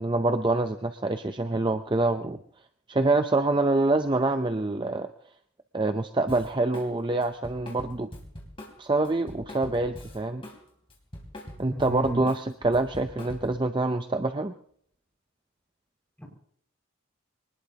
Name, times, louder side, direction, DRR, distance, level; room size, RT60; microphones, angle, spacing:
voice 1, 0.0-2.4 2.9-5.1 5.7-8.1 8.8-10.4 11.6-14.5, right 2 dB, 20° right, 8 dB, 0.6 m, -26 dB
Drum kit, 6.3-6.9 7.2-10.6 10.9-13.6, left 1 dB, 25° left, 3.3 m, -43 dB
voice 2, 11.7-12.2 16.2-16.3, equal, 5° left, -1 dB, 5.8 m, -34 dB
24.5 x 19.5 x 2.9 m, 0.63 s
head